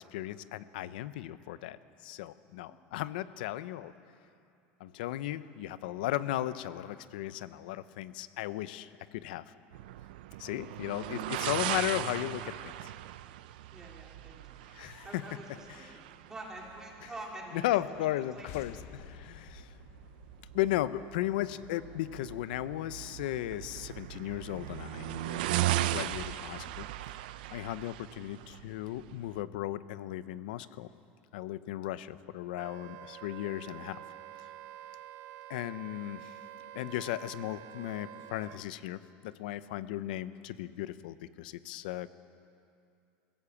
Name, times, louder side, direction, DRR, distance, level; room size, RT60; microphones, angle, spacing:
voice 1, 0.0-3.9 4.8-9.4 10.4-12.9 14.7-15.2 15.8-16.0 17.0-17.1 17.5-19.7 20.5-25.5 25.8-26.9 27.5-30.9 31.3-34.0 35.5-36.3 36.7-42.1, left 14 dB, 90° left, 15 dB, 0.7 m, -36 dB
sound 1, 9.7-29.4, right 15 dB, 90° right, 0.6 m, -38 dB
voice 2, 13.7-14.5 15.0-15.8 16.2-18.0 18.3-18.5 32.1-32.2, right 2 dB, 10° right, -1 dB, 3.1 m, -46 dB
sound 2, 18.5-21.9, left 11 dB, 55° left, 1.0 m, -51 dB
Wind instrument woodwind instrument, 32.5-38.6, right 12 dB, 60° right, 0.8 m, -48 dB
21.5 x 16.5 x 7.2 m, 2.5 s
supercardioid pair, 150°, 5 cm